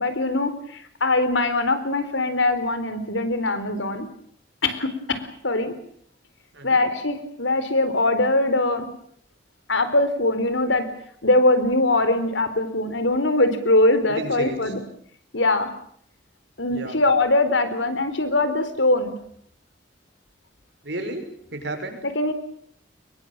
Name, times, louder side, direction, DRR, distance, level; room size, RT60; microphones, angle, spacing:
voice 1, 0.0-4.1 4.6-5.7 6.6-8.9 9.7-10.9 11.2-14.8 15.3-15.7 16.6-19.1 22.1-22.3, left 2 dB, 90° left, 10 dB, 4.3 m, -22 dB
voice 2, 6.5-6.8 14.1-14.7 16.7-17.0 20.8-22.0, right 1 dB, 70° right, 5 dB, 6.3 m, -33 dB
24.5 x 22.0 x 9.0 m, 0.66 s
head